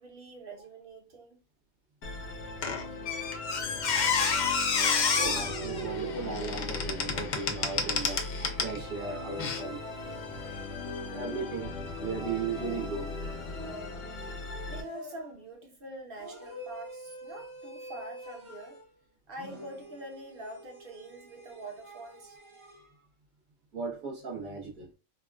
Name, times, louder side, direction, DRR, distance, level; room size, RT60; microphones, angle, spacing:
voice 1, 0.0-1.4 14.3-14.4 14.6-18.8 19.3-22.4, right 1 dB, 45° right, 1.0 m, -45 dB
Musical instrument, 2.0-14.8, left 3 dB, 55° left, 0.8 m, -39 dB
Squeak, 2.6-8.8 9.4-9.6, left 5 dB, 75° left, 0.4 m, -29 dB
voice 2, 5.1-8.3 8.6-9.8 11.1-13.1 23.7-24.9, right 5 dB, 80° right, 1.5 m, -36 dB
sound 1, 5.4-7.2 8.4-11.4 11.9-14.2 14.8-15.5 16.2-19.0 19.4-22.9, right 3 dB, 25° right, 0.7 m, -46 dB
3.6 x 2.3 x 2.2 m
omnidirectional pair, 1.5 m